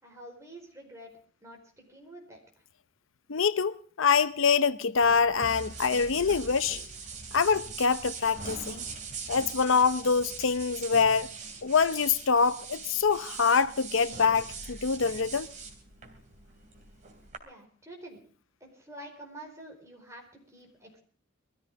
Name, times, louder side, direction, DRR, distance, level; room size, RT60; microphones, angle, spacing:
voice 1, 0.0-1.1 1.4-2.4 17.4-18.2 18.6-21.0, right 1 dB, 15° right, 4.6 m, -48 dB
voice 2, 3.3-6.8 7.3-8.8 9.3-11.3 11.6-15.5, left 5 dB, 75° left, 0.7 m, -25 dB
sound 1, 5.0-17.4, right 4 dB, 35° right, 2.9 m, -42 dB
22.5 x 14.0 x 3.6 m
head